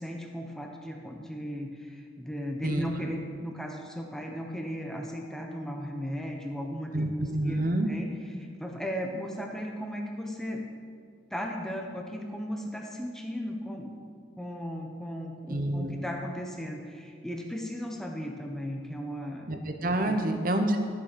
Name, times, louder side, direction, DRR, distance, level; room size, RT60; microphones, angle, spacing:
voice 1, 0.0-10.7 11.3-13.9 14.4-19.5 20.0-20.2, equal, 5° left, 1 dB, 0.9 m, -36 dB
voice 2, 6.9-7.9 15.5-16.0 19.5-20.8, right 1 dB, 45° right, 6 dB, 0.9 m, -28 dB
13.5 x 7.2 x 5.1 m, 2.1 s
head